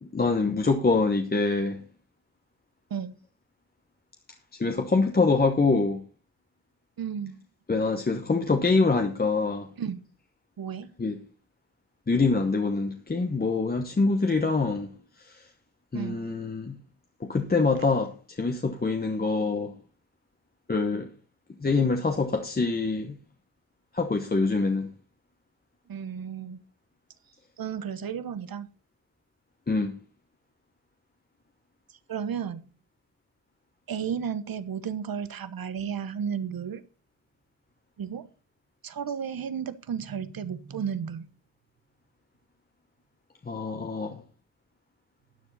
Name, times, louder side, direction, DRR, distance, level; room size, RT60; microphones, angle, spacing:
voice 1, 0.0-1.8 4.6-6.0 7.7-9.7 11.0-11.1 12.1-14.9 15.2-15.4 15.9-16.8 17.2-19.7 20.7-21.1 21.6-23.2 23.9-24.9 29.7-29.9 43.5-44.2, left 3 dB, 25° left, 1.1 m, -25 dB
voice 2, 7.0-7.4 9.8-10.0 10.6-10.9 15.9-16.2 25.9-26.6 27.6-28.7 32.1-32.6 33.9-36.8 38.0-38.3 38.8-41.3, right 7 dB, 85° right, 1.2 m, -33 dB
12.5 x 9.8 x 4.1 m
wide cardioid pair, 180°, 35 cm